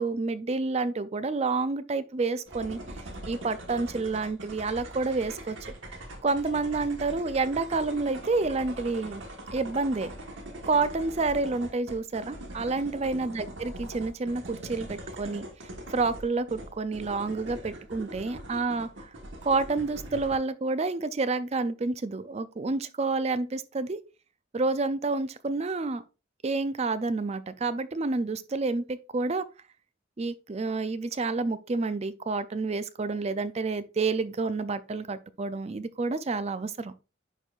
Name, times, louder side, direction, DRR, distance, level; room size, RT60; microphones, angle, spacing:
voice 1, 0.0-2.8 3.3-5.6 6.2-9.2 9.5-10.1 10.6-15.5 15.9-18.9 19.4-24.0 24.5-26.0 26.4-29.4 30.2-36.9, right 3 dB, 35° right, 0.4 m, -29 dB
sound 1, 2.5-20.3, right 1 dB, 75° right, 1.4 m, -42 dB
9.9 x 4.6 x 2.4 m
head